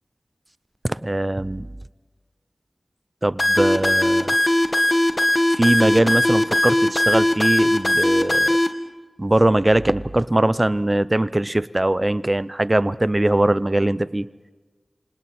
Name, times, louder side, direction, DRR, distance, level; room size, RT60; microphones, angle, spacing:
voice 1, 0.8-1.7 3.2-4.4 5.6-8.5 9.2-14.3, right 1 dB, 25° right, 17 dB, 0.6 m, -21 dB
sound 1, 3.4-8.7, left 1 dB, 30° left, 1.7 m, -19 dB
28.0 x 26.5 x 4.3 m, 1.3 s
wide cardioid pair, 75°, 0 cm